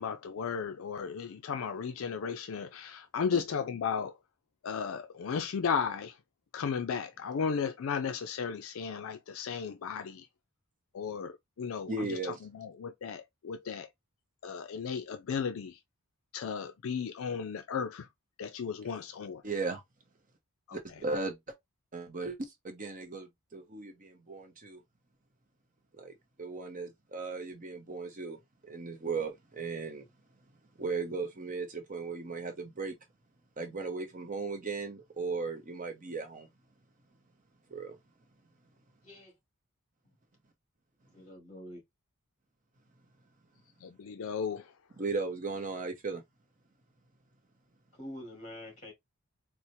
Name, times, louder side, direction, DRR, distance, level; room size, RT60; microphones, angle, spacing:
voice 1, 0.0-4.2 4.6-6.1 6.5-10.3 10.9-11.3 11.6-12.2 12.5-13.9 14.4-15.8 16.3-18.1 18.4-19.4 20.7-20.8 43.8-44.7, left 6 dB, 65° left, 0.4 m, -35 dB
voice 2, 11.9-12.4 19.4-19.8 20.7-21.4 21.9-22.4 22.6-24.8 26.0-28.4 28.6-30.1 30.8-33.0 33.6-36.5 37.7-38.0 45.0-46.2, right 4 dB, 35° right, 0.7 m, -37 dB
voice 3, 39.0-39.3 40.1-40.2 41.1-41.8 48.0-48.9, left 1 dB, 30° left, 1.9 m, -46 dB
4.3 x 2.1 x 2.6 m
head